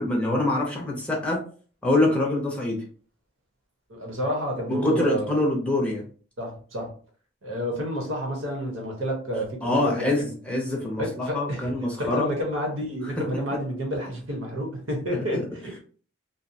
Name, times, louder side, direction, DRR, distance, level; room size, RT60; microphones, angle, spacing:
voice 1, 0.0-1.5 1.8-2.8 4.7-6.1 9.6-12.3 13.2-13.6 15.1-15.5, left 2 dB, 5° left, 0.5 m, -25 dB
voice 2, 3.9-5.3 6.4-6.9 7.4-10.4 11.0-11.7 12.0-15.8, equal, 90° right, 1.0 m, -30 dB
2.7 x 2.0 x 2.7 m
head